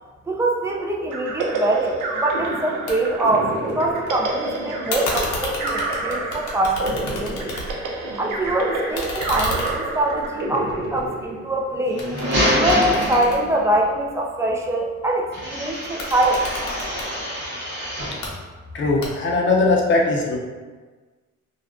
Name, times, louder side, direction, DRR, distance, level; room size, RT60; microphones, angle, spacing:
voice 1, 0.3-7.5 8.2-12.1 12.5-16.4, right 1 dB, 10° right, -2 dB, 0.3 m, -23 dB
sound 1, 1.1-11.7, right 2 dB, 80° right, 0.5 m, -28 dB
sound 2, 2.9-3.0 3.3-4.1 4.9-8.0 8.3-11.6 12.0-14.2 15.8-17.1 18.0-18.3 19.0-19.5, left 2 dB, 80° left, 0.6 m, -32 dB
sound 3, 11.8-13.8 15.3-18.3, equal, 35° right, 0.9 m, -25 dB
voice 2, 18.7-20.4, left 3 dB, 40° left, -1 dB, 0.5 m, -19 dB
2.3 x 2.2 x 2.4 m, 1.4 s
cardioid pair, 90°, 30 cm